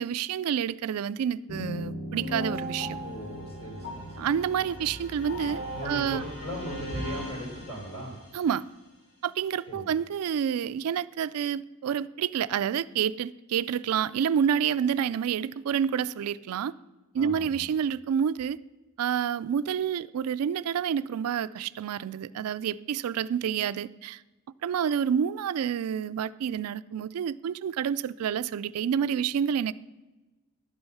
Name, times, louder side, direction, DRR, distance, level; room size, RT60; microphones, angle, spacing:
voice 1, 0.0-3.0 4.2-6.2 8.3-8.6 9.2-16.7 17.1-18.6 19.0-24.2 24.6-29.7, right 8 dB, 80° right, 0.3 m, -28 dB
sound 1, 1.5-8.3, equal, 75° left, 3.1 m, -37 dB
voice 2, 3.0-4.2 5.7-8.1 9.7-9.8 17.2-17.5, equal, 25° left, 4.0 m, -38 dB
11.5 x 7.8 x 5.6 m
head